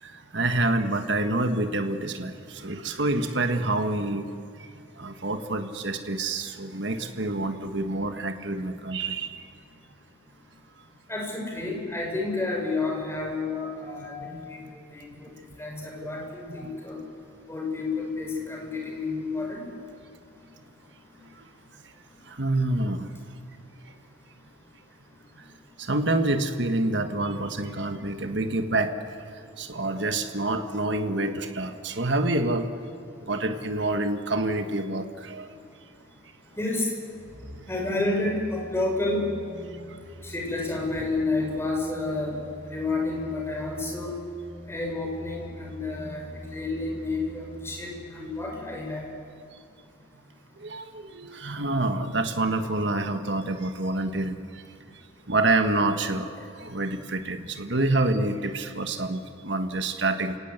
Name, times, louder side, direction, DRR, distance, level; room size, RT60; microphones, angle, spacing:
voice 1, 0.0-4.3 4.6-4.7 5.0-9.5 14.2-14.4 16.0-16.1 16.6-17.1 21.4-21.5 22.3-23.1 25.4-25.5 25.8-29.0 29.6-32.7 33.2-35.5 39.6-40.0 50.6-54.6 55.3-60.4, right 2 dB, 65° right, 7 dB, 1.6 m, -27 dB
voice 2, 11.1-14.6 14.9-15.3 15.6-17.0 17.5-19.6 36.6-36.9 37.7-39.3 40.2-44.1 44.7-49.1, left 2 dB, 15° left, 0 dB, 5.4 m, -30 dB
sound 1, 37.1-48.7 49.1-49.2, equal, 40° right, 2.4 m, -45 dB
29.0 x 18.0 x 8.1 m, 2.4 s
head